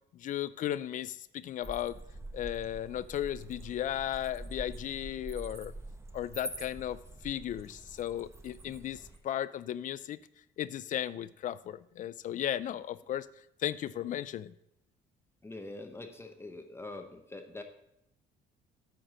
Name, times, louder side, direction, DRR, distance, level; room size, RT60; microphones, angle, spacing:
voice 1, 0.1-2.0 2.3-5.7 6.1-10.2 10.6-13.3 13.6-14.5, left 11 dB, 50° left, 17 dB, 0.4 m, -35 dB
sound 1, 1.6-9.2, right 2 dB, 15° right, 0.8 m, -45 dB
voice 2, 15.4-17.6, left 2 dB, 15° left, 5 dB, 0.8 m, -44 dB
8.9 x 4.6 x 6.2 m, 0.80 s
cardioid pair, 110°, 17 cm